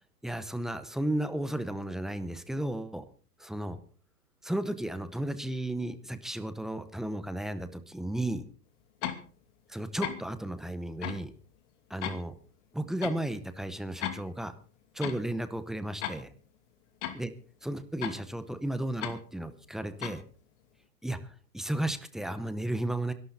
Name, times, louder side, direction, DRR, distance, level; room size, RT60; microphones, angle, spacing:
voice 1, 0.2-3.1 3.4-3.8 4.4-8.4 9.7-11.3 11.9-12.3 12.7-14.6 14.9-16.3 17.1-17.3 17.6-20.2 21.0-23.1, right 1 dB, ahead, 11 dB, 0.7 m, -34 dB
sound 1, 9.0-9.2 10.0-10.3 11.0-11.2 12.0-12.2 13.0-13.2 14.0-14.2 15.0-15.2 16.0-16.2 17.0-17.2 18.0-18.2 19.0-19.2 20.0-20.2, left 10 dB, 50° left, 2.7 m, -35 dB
24.0 x 12.0 x 4.1 m, 0.41 s
hypercardioid pair, 145°, 47 cm